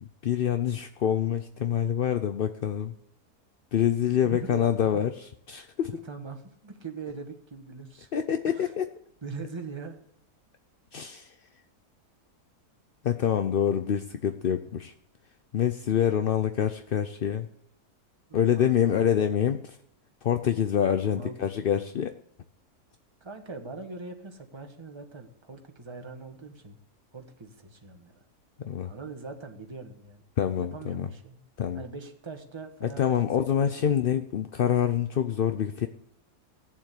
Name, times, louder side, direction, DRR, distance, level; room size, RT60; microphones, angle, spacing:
voice 1, 0.0-2.9 3.7-5.1 5.5-5.9 8.1-8.9 10.9-11.3 13.0-14.9 15.5-17.5 18.3-19.8 20.2-22.2 28.6-28.9 30.4-31.1 31.6-31.8 32.8-35.9, left 9 dB, 60° left, 8 dB, 0.6 m, -26 dB
voice 2, 4.2-5.0 5.9-8.1 8.6-8.7 9.2-10.0 18.3-18.9 21.0-21.5 23.2-26.8 27.1-28.2 28.8-30.2 30.5-31.4 31.7-33.7, right 4 dB, 20° right, 4 dB, 1.4 m, -42 dB
16.0 x 7.3 x 8.4 m, 0.73 s
omnidirectional pair, 1.6 m